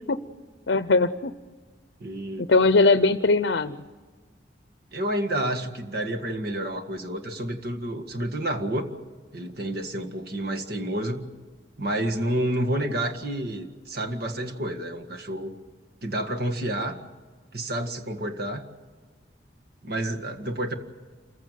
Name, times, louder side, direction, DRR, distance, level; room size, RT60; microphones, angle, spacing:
voice 1, 0.7-1.3 2.4-3.8, left 3 dB, 65° left, 12 dB, 0.7 m, -20 dB
voice 2, 2.0-2.5 4.9-8.9 9.3-11.3 11.8-15.6 16.0-17.0 17.5-18.6 19.8-20.7, right 1 dB, 60° right, 4 dB, 1.9 m, -29 dB
27.5 x 15.5 x 9.2 m, 1.5 s
head